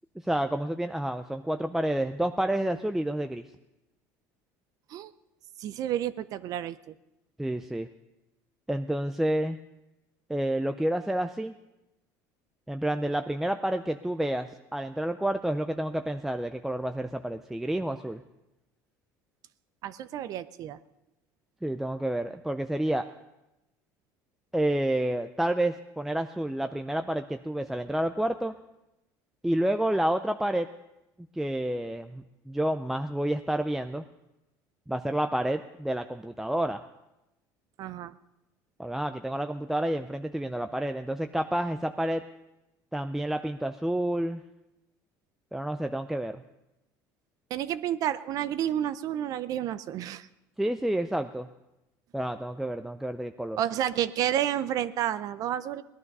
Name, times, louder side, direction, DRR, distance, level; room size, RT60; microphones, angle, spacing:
voice 1, 0.2-3.5 7.4-7.9 8.7-9.6 10.3-11.5 12.7-18.2 21.6-23.1 24.5-28.5 29.4-30.7 31.3-34.0 34.9-36.8 38.8-42.2 42.9-44.4 45.5-46.4 50.6-51.5 52.1-53.6, right 1 dB, 5° right, 7 dB, 0.4 m, -29 dB
voice 2, 5.6-6.9 19.8-20.8 37.8-38.1 47.5-50.3 53.6-55.8, right 11 dB, 50° right, 14 dB, 0.5 m, -30 dB
18.5 x 11.0 x 5.4 m, 0.95 s
cardioid pair, 130°, 8 cm